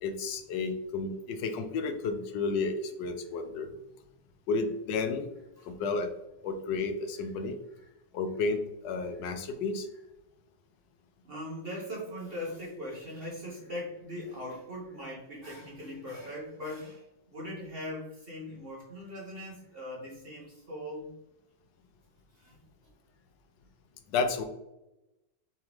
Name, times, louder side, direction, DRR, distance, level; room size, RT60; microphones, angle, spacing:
voice 1, 0.0-3.7 4.5-5.3 5.6-6.1 6.4-7.6 8.1-9.9 24.1-24.4, left 4 dB, 80° left, 6 dB, 1.3 m, -32 dB
voice 2, 11.2-21.1 22.3-22.6, left 1 dB, 40° right, -4 dB, 1.0 m, -40 dB
4.1 x 3.7 x 3.0 m, 0.90 s
omnidirectional pair, 1.9 m